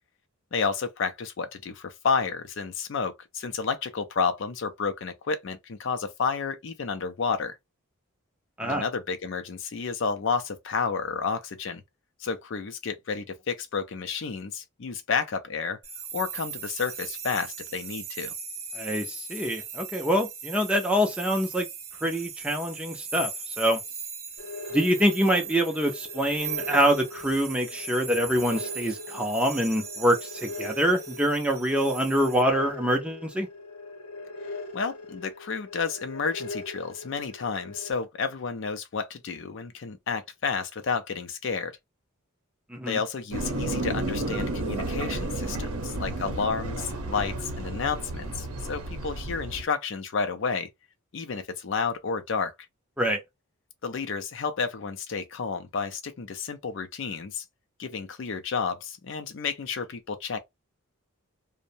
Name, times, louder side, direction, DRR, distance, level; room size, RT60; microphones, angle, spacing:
voice 1, 0.5-7.6 8.6-11.8 12.2-15.8 16.1-18.3 34.7-41.7 42.9-50.7 51.1-52.5 53.8-57.4 57.8-60.4, left 5 dB, 55° left, 0.4 m, -31 dB
sound 1, 15.8-32.4, right 6 dB, 40° right, 0.8 m, -39 dB
voice 2, 18.7-21.7 22.0-23.8 24.7-33.5 42.7-43.0 53.0-53.2, equal, 5° right, 0.4 m, -25 dB
sound 2, 24.4-37.9, left 2 dB, 85° left, 0.8 m, -41 dB
sound 3, 43.3-49.6, right 2 dB, 85° right, 0.7 m, -32 dB
2.6 x 2.1 x 2.6 m
head